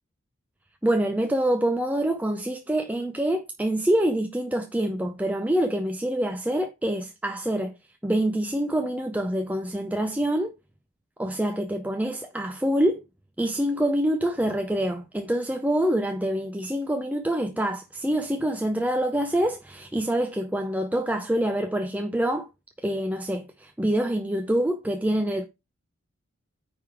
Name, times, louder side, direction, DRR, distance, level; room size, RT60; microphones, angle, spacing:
voice 1, 0.8-7.7 8.0-10.5 11.2-13.0 13.4-22.5 22.8-25.5, right 1 dB, 5° right, 0.5 m, -26 dB
9.3 x 3.7 x 4.7 m
head